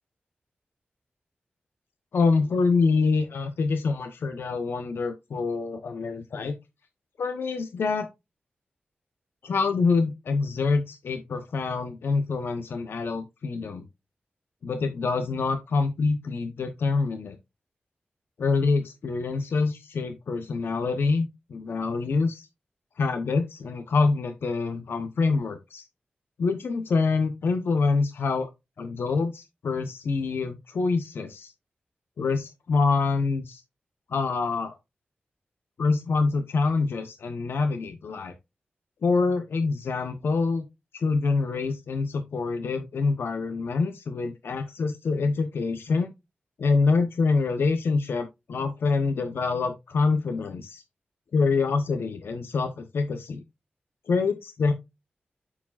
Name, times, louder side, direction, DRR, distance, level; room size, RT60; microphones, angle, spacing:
voice 1, 2.1-6.6 7.2-8.1 9.4-13.8 14.6-17.4 18.4-22.5 23.0-25.8 26.4-28.5 28.8-31.5 32.2-33.6 34.1-34.8 35.8-38.3 39.0-40.7 40.9-46.1 46.6-50.8 51.3-53.4 54.1-54.7, left 4 dB, 80° left, 7 dB, 0.9 m, -26 dB
11.0 x 4.9 x 2.5 m, 0.22 s
cardioid pair, 60°, 4 cm